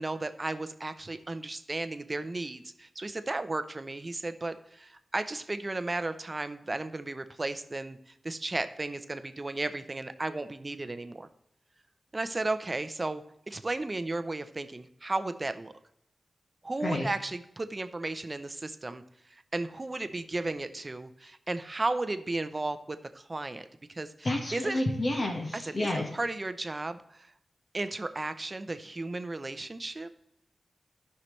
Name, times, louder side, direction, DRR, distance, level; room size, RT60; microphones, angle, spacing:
voice 1, 0.0-8.0 8.2-11.3 12.1-15.7 16.6-19.0 19.3-24.8 25.5-27.3 27.7-30.1, right 2 dB, 35° right, 10 dB, 0.7 m, -34 dB
voice 2, 24.2-26.1, left 1 dB, 50° left, 2 dB, 1.5 m, -30 dB
15.5 x 5.8 x 3.2 m, 0.76 s
wide cardioid pair, 80°, 0 cm